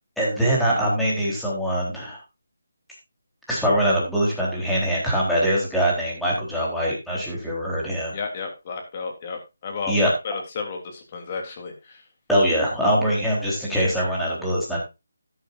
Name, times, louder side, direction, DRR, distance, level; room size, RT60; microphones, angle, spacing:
voice 1, 0.2-2.2 3.5-8.1 9.9-10.1 12.3-14.8, equal, ahead, -6 dB, 3.8 m, -23 dB
voice 2, 8.1-12.0, left 4 dB, 30° left, 4 dB, 3.2 m, -32 dB
13.0 x 11.0 x 2.6 m, 0.25 s
figure-of-eight pair, 170°, 0 cm